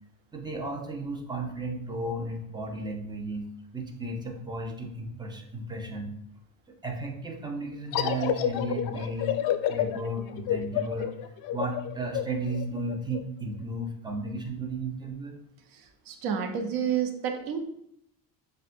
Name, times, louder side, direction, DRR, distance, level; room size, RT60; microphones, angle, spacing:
voice 1, 0.3-3.5 3.7-6.1 6.8-9.4 9.7-11.1 11.5-15.4, right 2 dB, 10° right, 1 dB, 0.8 m, -34 dB
sound 1, 7.9-13.2, left 11 dB, 60° left, 0.5 m, -29 dB
voice 2, 15.7-17.6, right 7 dB, 60° right, 5 dB, 0.8 m, -30 dB
7.1 x 2.5 x 2.6 m, 0.72 s
supercardioid pair, 100°, 40 cm